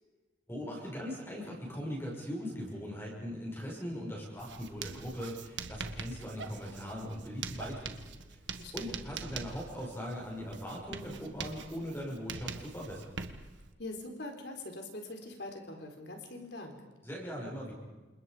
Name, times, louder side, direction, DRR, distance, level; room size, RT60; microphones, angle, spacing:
voice 1, 0.5-8.0 8.3-8.4 8.7-13.1 17.0-17.7, equal, 15° left, -3 dB, 6.4 m, -40 dB
Writing, 4.4-13.7, right 5 dB, 75° right, 1.5 m, -44 dB
voice 2, 8.5-9.0 13.8-16.8, left 2 dB, 60° left, 4 dB, 4.3 m, -43 dB
29.0 x 27.5 x 5.2 m, 1.3 s
head